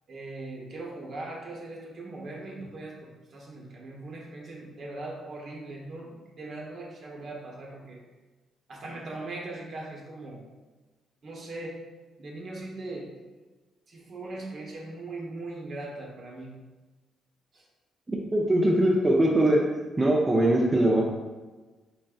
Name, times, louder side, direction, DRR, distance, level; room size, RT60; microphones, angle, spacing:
voice 1, 0.1-8.0 8.7-10.4 11.2-11.8 12.2-13.1 13.9-16.6 17.5-17.6, right 2 dB, 55° right, -2 dB, 1.0 m, -40 dB
voice 2, 18.3-19.6 20.0-21.0, right 1 dB, 20° right, -3 dB, 0.6 m, -21 dB
3.9 x 3.7 x 2.4 m, 1.3 s
cardioid pair, 90°, 0 cm